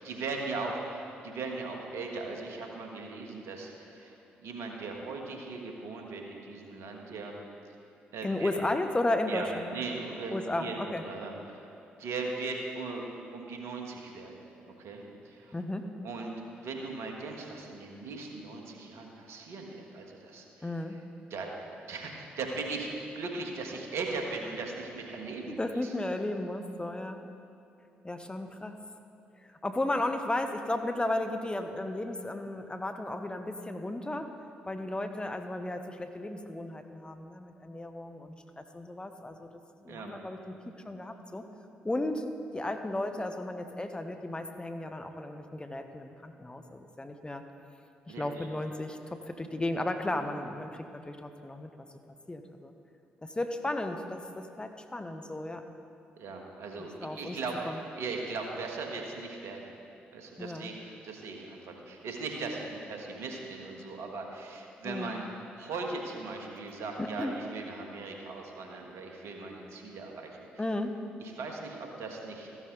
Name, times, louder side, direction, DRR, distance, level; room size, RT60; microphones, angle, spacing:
voice 1, 0.0-7.3 8.1-8.5 9.3-11.7 12.0-13.1 13.3-15.6 16.0-20.7 21.3-25.9 39.9-40.1 48.1-48.5 56.2-59.7 60.1-65.2 65.6-70.4 71.2-72.5, right 3 dB, 70° right, 1 dB, 1.7 m, -39 dB
voice 2, 8.2-9.7 10.3-11.1 15.5-15.9 20.6-21.0 25.5-27.2 28.0-28.8 29.4-34.3 34.6-39.5 39.8-40.6 40.8-41.4 41.8-42.2 42.5-47.4 48.1-51.9 52.3-52.7 53.2-55.6 57.0-57.4 57.6-57.8 60.4-60.7 64.8-65.1 67.0-67.3 70.6-71.0, left 1 dB, 20° left, 6 dB, 1.1 m, -34 dB
14.5 x 12.0 x 4.0 m, 2.7 s
hypercardioid pair, 45°, 5 cm